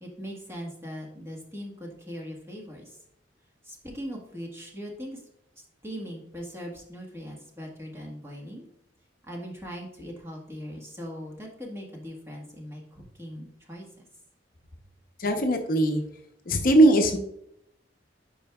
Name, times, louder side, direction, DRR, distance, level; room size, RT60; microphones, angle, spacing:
voice 1, 0.0-3.0 3.6-5.2 5.8-8.7 9.2-14.1, equal, 15° right, -1 dB, 1.4 m, -40 dB
voice 2, 15.2-16.0 16.5-17.2, right 1 dB, 50° left, 5 dB, 0.7 m, -20 dB
8.8 x 5.0 x 2.3 m, 0.74 s
head